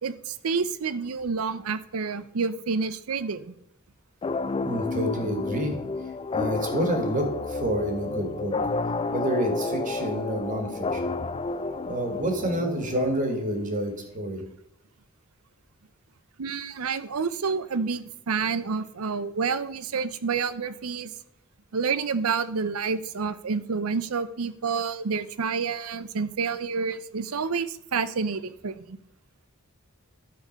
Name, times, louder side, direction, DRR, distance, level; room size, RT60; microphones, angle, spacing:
voice 1, 0.0-3.5 16.4-21.1 21.7-29.0, right 5 dB, 85° right, 14 dB, 0.6 m, -29 dB
sound 1, 4.2-13.7, left 3 dB, 25° left, 0.4 m, -31 dB
voice 2, 4.6-5.8 6.3-8.5 9.1-11.1 11.8-14.4, equal, 40° right, 4 dB, 1.7 m, -28 dB
12.5 x 4.3 x 5.2 m, 0.76 s
head